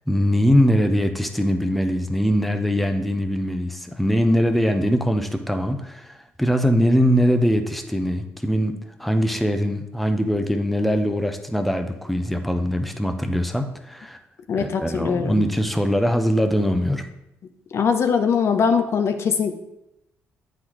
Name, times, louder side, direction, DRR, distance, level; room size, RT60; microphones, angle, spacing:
voice 1, 0.1-8.7 9.0-14.2 14.6-17.0, equal, ahead, 6 dB, 0.7 m, -22 dB
voice 2, 14.5-15.5 17.7-19.5, left 6 dB, 55° left, 7 dB, 0.5 m, -21 dB
8.4 x 4.0 x 3.1 m, 0.85 s
supercardioid pair, 65°, 5 cm